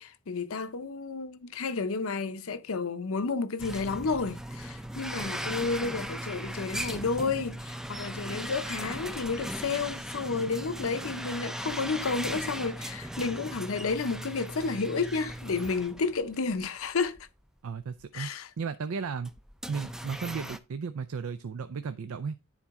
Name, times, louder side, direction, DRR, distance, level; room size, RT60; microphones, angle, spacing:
voice 1, 0.0-17.2 18.1-18.5, left 4 dB, 70° left, 0.7 m, -31 dB
sound 1, 3.6-16.7 17.1-17.2 18.0-18.1 19.2-20.6, right 1 dB, 5° right, 0.4 m, -38 dB
voice 2, 17.6-19.3 19.7-22.4, right 5 dB, 80° right, 0.5 m, -35 dB
9.8 x 4.3 x 3.6 m
head